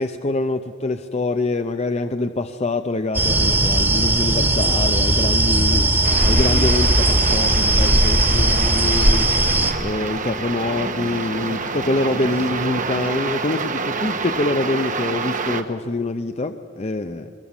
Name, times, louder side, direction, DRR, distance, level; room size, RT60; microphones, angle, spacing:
voice 1, 0.0-5.9 6.2-17.3, left 2 dB, 35° left, 8 dB, 0.6 m, -25 dB
sound 1, 3.1-9.7, right 1 dB, 10° right, 1.5 m, -18 dB
sound 2, 6.0-15.6, right 4 dB, 40° right, 1.1 m, -27 dB
22.5 x 21.5 x 7.1 m, 2.4 s
head